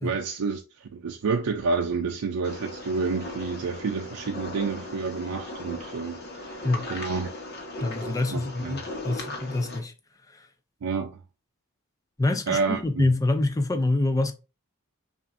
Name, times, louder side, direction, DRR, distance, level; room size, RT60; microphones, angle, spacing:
voice 1, 0.0-7.3 8.3-8.9 10.8-11.2 12.5-13.1, right 4 dB, 85° right, 0.5 m, -29 dB
sound 1, 2.4-9.8, left 2 dB, 45° left, 1.0 m, -38 dB
voice 2, 7.8-8.8 9.0-9.9 12.2-14.3, left 2 dB, 15° left, 0.4 m, -25 dB
5.7 x 2.5 x 2.5 m
head